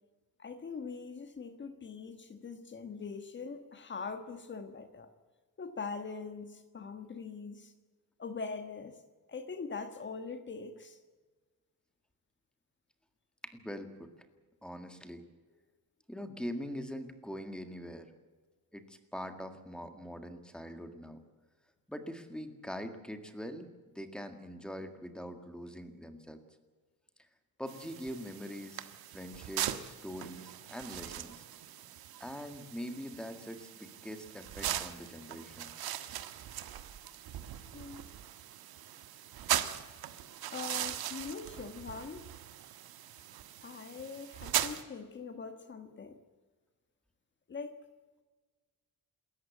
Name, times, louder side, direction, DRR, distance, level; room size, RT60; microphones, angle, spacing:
voice 1, 0.4-5.1 5.6-7.7 8.2-9.0 9.3-11.0 37.7-38.0 40.5-42.3 43.6-46.2 47.5-47.8, left 5 dB, 30° left, 9 dB, 1.4 m, -42 dB
voice 2, 13.4-14.1 14.6-15.2 16.1-18.1 18.7-21.2 21.9-23.7 23.9-26.4 27.6-28.9 29.1-31.4 32.2-35.7, equal, ahead, 7 dB, 1.8 m, -43 dB
sound 1, 27.7-44.8, right 11 dB, 85° right, 1.5 m, -40 dB
27.5 x 14.0 x 8.5 m, 1.3 s
wide cardioid pair, 175°, 36 cm